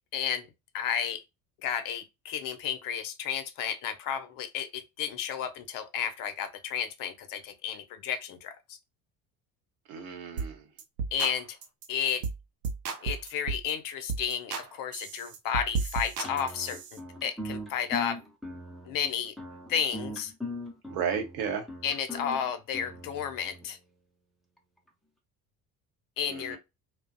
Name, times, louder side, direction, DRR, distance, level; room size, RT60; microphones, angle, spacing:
voice 1, 0.1-0.5 0.7-1.2 1.6-8.8 11.1-11.6 11.9-12.2 13.0-18.2 18.9-19.3 19.7-20.3 21.8-23.8 26.2-26.6, left 8 dB, 45° left, 0.6 m, -32 dB
voice 2, 9.9-10.6 20.9-21.7 26.3-26.6, right 7 dB, 65° right, 0.8 m, -33 dB
sound 1, 10.4-10.5 10.8-11.3 11.6-11.9 12.2-12.4 12.6-13.7 14.1-14.7 14.9-17.0, right 5 dB, 85° right, 0.5 m, -33 dB
sound 2, 16.2-23.6, left 1 dB, ahead, 0.4 m, -40 dB
2.5 x 2.0 x 2.5 m
figure-of-eight pair, 60°, 46 cm